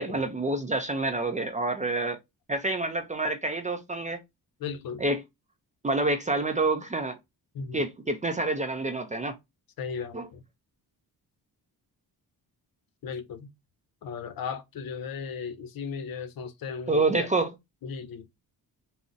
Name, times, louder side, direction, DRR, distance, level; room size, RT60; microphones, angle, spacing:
voice 1, 0.0-2.2 2.5-4.2 5.0-5.2 5.8-7.2 7.7-9.4 10.1-10.3 16.9-17.5, right 2 dB, 20° right, 0.4 m, -27 dB
voice 2, 4.6-5.0 7.5-7.8 9.8-10.4 13.0-13.5 14.0-17.3 17.8-18.3, left 6 dB, 65° left, 0.7 m, -36 dB
3.7 x 2.0 x 2.5 m
wide cardioid pair, 160°, 39 cm